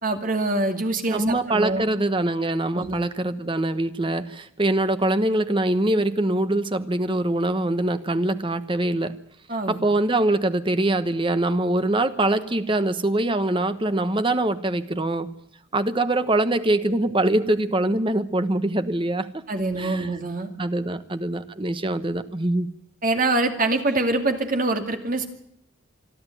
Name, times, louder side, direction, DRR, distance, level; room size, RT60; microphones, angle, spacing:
voice 1, 0.0-1.9 2.7-3.0 9.5-9.8 19.5-20.5 23.0-25.3, right 2 dB, 40° right, 5 dB, 2.3 m, -24 dB
voice 2, 1.1-9.1 9.7-15.3 15.7-19.4 19.8-20.1 20.6-22.7, right 1 dB, 25° right, 11 dB, 1.0 m, -23 dB
26.5 x 11.5 x 9.2 m, 0.75 s
head